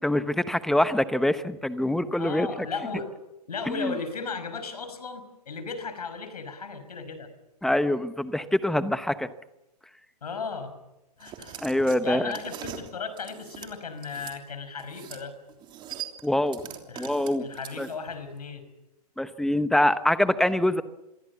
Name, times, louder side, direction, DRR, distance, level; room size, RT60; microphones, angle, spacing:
voice 1, 0.0-2.5 3.8-3.9 7.6-9.3 11.6-12.3 16.2-16.6 17.0-17.5 17.8-17.9 19.2-20.8, left 1 dB, ahead, 13 dB, 0.9 m, -24 dB
voice 2, 2.2-3.1 3.5-7.3 10.2-10.7 11.2-15.3 16.9-17.1 17.4-18.6, left 5 dB, 75° left, 11 dB, 5.5 m, -36 dB
sound 1, 11.2-14.4 14.8-15.2 15.5-18.1, right 10 dB, 25° right, 3.2 m, -41 dB
27.0 x 22.5 x 7.1 m, 0.97 s
hypercardioid pair, 125°, 20 cm